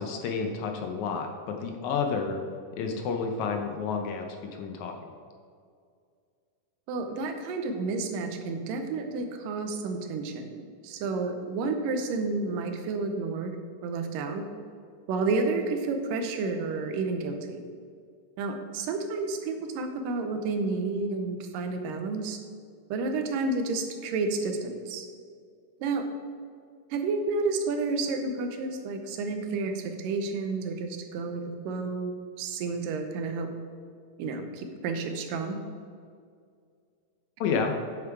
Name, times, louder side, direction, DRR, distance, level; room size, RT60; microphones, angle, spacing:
voice 1, 0.0-2.4 2.8-4.2 4.5-5.0 37.4-37.7, left 5 dB, 70° left, 4 dB, 2.0 m, -30 dB
voice 2, 6.9-13.5 13.8-14.5 15.1-17.6 18.4-22.4 22.9-25.1 25.8-26.1 26.9-33.5 34.2-35.6, right 3 dB, 85° right, 6 dB, 2.5 m, -30 dB
9.6 x 7.3 x 4.7 m, 2.2 s
omnidirectional pair, 3.8 m